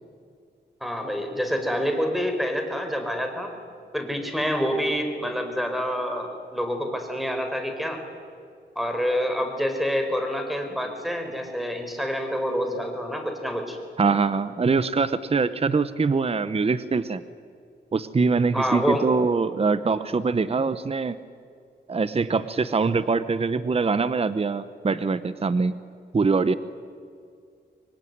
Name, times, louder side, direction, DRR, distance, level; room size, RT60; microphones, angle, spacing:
voice 1, 0.8-3.5 3.9-8.0 8.7-13.8 18.5-19.1, equal, ahead, 5 dB, 4.6 m, -27 dB
voice 2, 14.0-17.2 17.9-21.2 21.9-25.8 26.1-26.5, right 4 dB, 35° right, 13 dB, 0.9 m, -23 dB
25.5 x 22.5 x 9.5 m, 2.3 s
wide cardioid pair, 105°, 19 cm